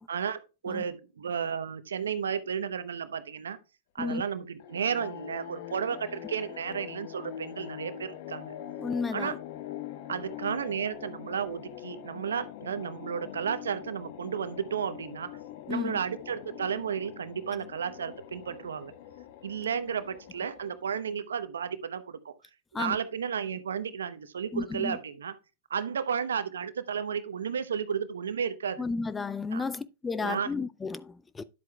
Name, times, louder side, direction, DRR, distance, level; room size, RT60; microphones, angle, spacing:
voice 1, 0.1-3.6 3.9-8.5 9.1-9.3 10.1-15.3 15.7-18.9 19.4-22.3 22.7-25.3 25.7-28.8 29.5-29.6 30.2-30.5, right 7 dB, 80° right, 0.8 m, -33 dB
sound 1, 4.6-21.2, left 11 dB, 55° left, 0.8 m, -43 dB
voice 2, 8.8-9.4 15.7-16.0 22.7-23.0 24.5-25.0 28.8-31.4, left 4 dB, 15° left, 0.4 m, -33 dB
10.5 x 7.8 x 2.3 m
hypercardioid pair, 105°, 0 cm